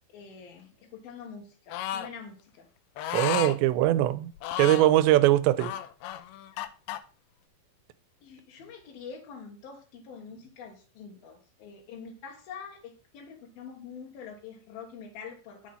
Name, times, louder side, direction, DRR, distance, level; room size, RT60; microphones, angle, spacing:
voice 1, 0.1-2.7 8.2-15.7, left 6 dB, 65° left, 3.0 m, -45 dB
sound 1, 1.7-2.1 3.0-3.6 4.4-4.9 5.6-7.0, left 11 dB, 85° left, 3.1 m, -33 dB
voice 2, 3.1-4.3 4.6-5.7, right 15 dB, 85° right, 3.0 m, -21 dB
11.0 x 7.5 x 5.5 m
omnidirectional pair, 5.1 m